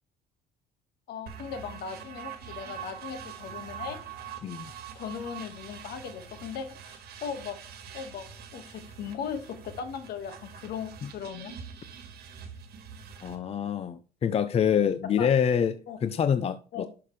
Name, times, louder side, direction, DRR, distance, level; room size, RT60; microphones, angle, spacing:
voice 1, 1.1-4.0 5.0-7.6 7.9-8.3 8.5-11.5 15.2-15.3 15.9-16.0 16.7-16.9, left 7 dB, 70° left, 1.8 m, -38 dB
sound 1, 1.3-13.4, right 8 dB, 70° right, 1.7 m, -44 dB
voice 2, 13.2-15.7 16.0-16.9, left 8 dB, 35° left, 0.6 m, -26 dB
11.5 x 5.8 x 3.3 m
cardioid pair, 110°, 17 cm